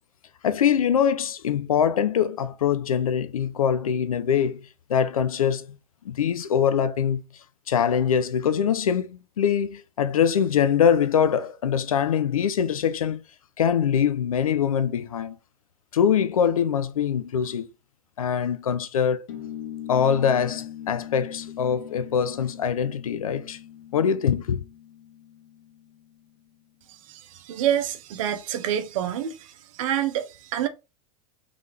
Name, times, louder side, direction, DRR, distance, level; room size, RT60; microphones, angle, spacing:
voice 1, 0.4-4.6 4.9-5.7 6.1-7.2 7.7-13.2 13.6-15.4 15.9-17.7 18.2-19.3 19.9-23.6 23.9-24.6, left 8 dB, 85° left, 0.5 m, -23 dB
sound 1, 19.3-26.2, left 11 dB, 65° left, 0.9 m, -41 dB
voice 2, 26.9-30.7, right 10 dB, 65° right, 0.8 m, -28 dB
3.4 x 3.4 x 3.4 m
hypercardioid pair, 90°, 18 cm